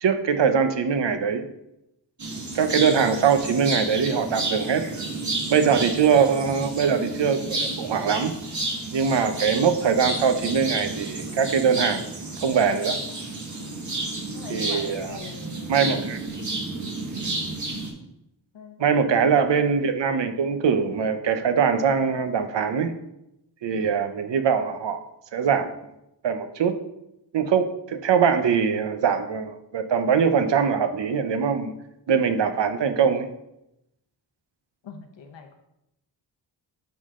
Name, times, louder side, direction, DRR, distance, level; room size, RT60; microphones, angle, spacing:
voice 1, 0.0-1.4 2.5-4.8 5.5-8.3 8.9-12.1 12.4-13.0 14.5-15.2 15.7-16.2 18.8-22.9 23.6-25.0 25.3-25.7 26.2-26.7 27.3-31.7 32.1-33.3, right 6 dB, 70° right, 8 dB, 0.9 m, -22 dB
sound 1, 2.2-17.9, right 2 dB, 40° right, 1.7 m, -31 dB
voice 2, 13.6-13.9 14.3-16.1 18.5-19.1 34.8-35.5, left 5 dB, 75° left, 4 dB, 0.9 m, -43 dB
11.5 x 3.9 x 3.7 m, 0.86 s
wide cardioid pair, 90°, 45 cm